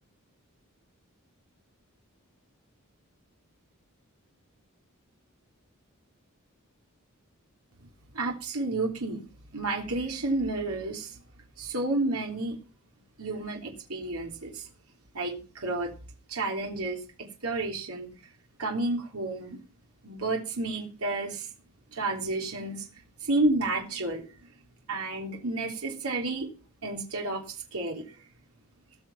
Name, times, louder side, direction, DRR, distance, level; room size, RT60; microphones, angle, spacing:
voice 1, 8.1-9.2 9.5-11.2 11.6-12.6 13.2-14.7 15.1-15.9 16.3-18.1 18.6-19.6 20.0-21.5 21.9-22.8 23.2-24.2 24.9-26.5 26.8-28.0, right 2 dB, 80° right, 1 dB, 3.4 m, -31 dB
19.0 x 6.5 x 5.8 m, 0.35 s
head